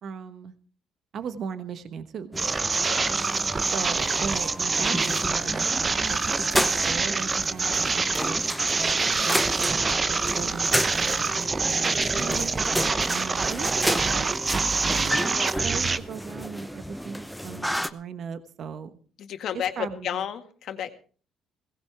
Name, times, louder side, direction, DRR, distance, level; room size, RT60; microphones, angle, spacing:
voice 1, 0.0-0.5 1.1-2.4 3.7-8.4 9.2-12.5 13.1-18.9 19.5-20.2, right 7 dB, 60° right, 11 dB, 1.2 m, -37 dB
sound 1, 2.3-17.9, equal, ahead, 0.9 m, -32 dB
sound 2, 2.4-16.0, right 4 dB, 30° right, 0.8 m, -26 dB
sound 3, 5.8-10.2, right 5 dB, 85° right, 4.3 m, -51 dB
voice 2, 19.2-20.9, left 9 dB, 65° left, 7 dB, 1.8 m, -32 dB
17.5 x 16.0 x 3.5 m, 0.40 s
cardioid pair, 85°, 0 cm